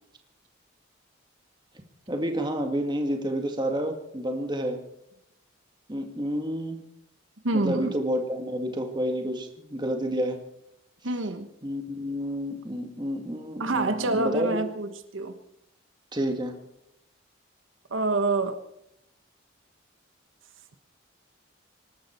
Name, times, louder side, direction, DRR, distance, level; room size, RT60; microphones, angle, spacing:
voice 1, 2.1-4.8 5.9-6.8 7.5-10.4 11.6-14.6 16.1-16.6, equal, 20° right, 4 dB, 1.9 m, -29 dB
voice 2, 7.4-7.9 11.0-11.5 13.6-15.3 17.9-18.6, right 2 dB, 75° right, 8 dB, 1.3 m, -27 dB
25.0 x 12.5 x 4.5 m, 0.79 s
head